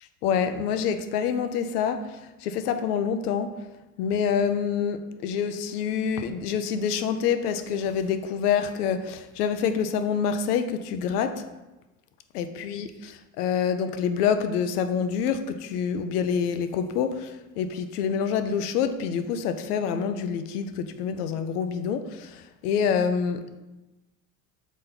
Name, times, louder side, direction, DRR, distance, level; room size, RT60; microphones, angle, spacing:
voice 1, 0.2-3.6 4.0-11.4 12.3-23.6, left 7 dB, 80° left, 9 dB, 0.6 m, -27 dB
6.2 x 4.3 x 3.8 m, 1.0 s
hypercardioid pair, 75°, 46 cm